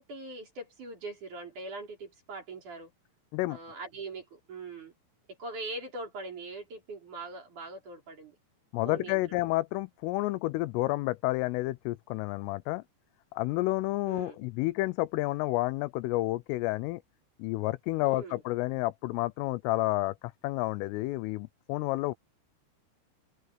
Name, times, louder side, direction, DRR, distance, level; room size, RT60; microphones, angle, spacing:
voice 1, 0.0-2.9 3.5-4.9 5.4-8.4 8.8-9.4 14.1-14.4 18.0-18.4, right 2 dB, 40° right, 6.3 m, -42 dB
voice 2, 8.7-12.8 13.3-17.0 17.4-20.1 20.4-22.2, left 19 dB, 85° left, 3.2 m, -30 dB
open air
omnidirectional pair, 5.9 m